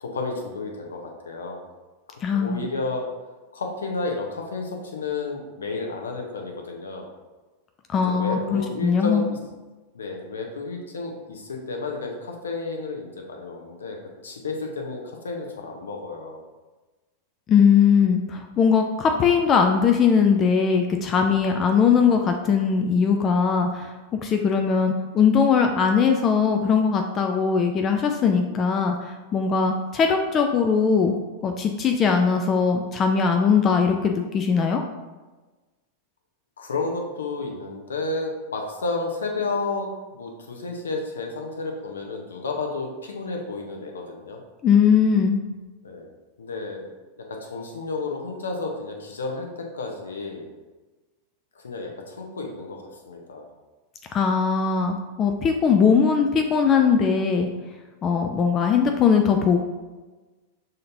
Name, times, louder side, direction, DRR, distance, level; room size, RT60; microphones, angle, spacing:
voice 1, 0.0-1.6 2.3-3.1 3.5-7.1 8.0-9.4 9.9-14.0 14.2-16.4 36.6-39.9 40.1-44.4 45.8-46.1 46.4-46.8 47.2-50.5 51.5-53.5, left 3 dB, 70° left, 2 dB, 0.7 m, -31 dB
voice 2, 2.2-2.6 7.9-9.3 17.5-23.9 24.2-31.1 31.4-34.8 44.6-45.4 54.1-57.5 58.0-59.6, left 6 dB, 30° left, 4 dB, 0.3 m, -20 dB
6.4 x 2.8 x 2.6 m, 1.2 s
figure-of-eight pair, 90°, 0 cm